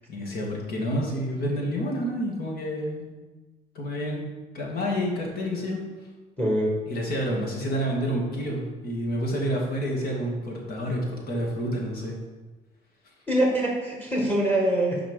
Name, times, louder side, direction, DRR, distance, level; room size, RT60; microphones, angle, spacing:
voice 1, 0.1-3.1 3.7-4.2 4.5-5.8 6.9-12.2, equal, 65° left, -2 dB, 2.4 m, -29 dB
voice 2, 6.4-6.7 13.3-15.0, right 1 dB, 10° left, -1 dB, 2.0 m, -24 dB
6.0 x 5.0 x 6.4 m, 1.2 s
cardioid pair, 110°, 17 cm